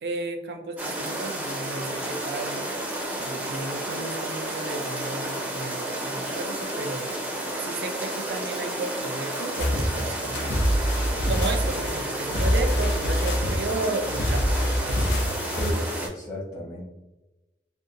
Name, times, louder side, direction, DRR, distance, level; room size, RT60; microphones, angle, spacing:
voice 1, 0.0-2.7 3.1-7.1 7.6-10.5 11.3-14.5 14.8-15.1, right 3 dB, 75° right, 6 dB, 0.4 m, -33 dB
sound 1, 0.8-16.1, right 1 dB, 10° right, 0.4 m, -31 dB
sound 2, 9.6-15.7, equal, 80° left, 0.5 m, -25 dB
voice 2, 16.0-16.8, left 1 dB, 20° left, -4 dB, 0.9 m, -35 dB
2.8 x 2.1 x 2.4 m, 1.0 s
head